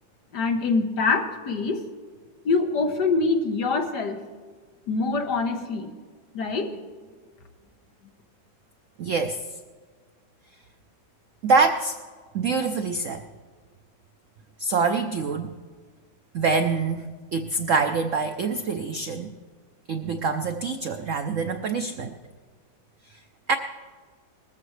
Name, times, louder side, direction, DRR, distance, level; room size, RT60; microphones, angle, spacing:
voice 1, 0.3-1.8 2.4-4.2 4.9-5.9 6.3-6.7, left 4 dB, 60° left, 5 dB, 1.6 m, -24 dB
voice 2, 9.0-9.4 11.4-12.0 12.3-13.2 14.6-15.5 16.3-19.3 19.9-22.2 23.5-23.6, right 4 dB, 80° right, 7 dB, 0.7 m, -25 dB
20.0 x 14.5 x 3.2 m, 1.5 s
omnidirectional pair, 2.1 m